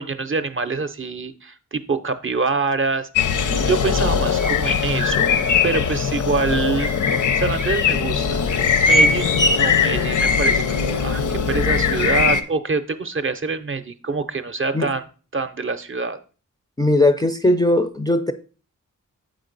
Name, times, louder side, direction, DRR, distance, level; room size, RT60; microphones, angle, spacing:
voice 1, 0.0-3.3 3.7-5.3 5.6-15.0 15.3-16.2, right 4 dB, 40° right, 0.6 m, -25 dB
sound 1, 3.2-12.4, left 5 dB, 75° left, 0.6 m, -20 dB
voice 2, 16.8-18.3, left 1 dB, 15° left, 0.4 m, -18 dB
7.9 x 5.0 x 3.9 m
wide cardioid pair, 130°, 31 cm